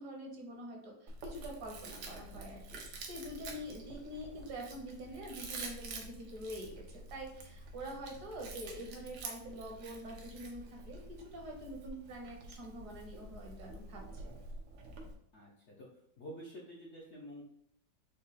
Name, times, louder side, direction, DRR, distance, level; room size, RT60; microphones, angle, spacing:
voice 1, 0.0-14.2, right 1 dB, 65° right, 0 dB, 1.5 m, -46 dB
Chewing mastication, 1.1-15.1, right 2 dB, 85° right, 1.5 m, -48 dB
voice 2, 15.3-15.9 16.2-17.4, equal, 60° left, -3 dB, 0.7 m, -49 dB
5.2 x 2.3 x 4.0 m, 0.75 s
omnidirectional pair, 1.9 m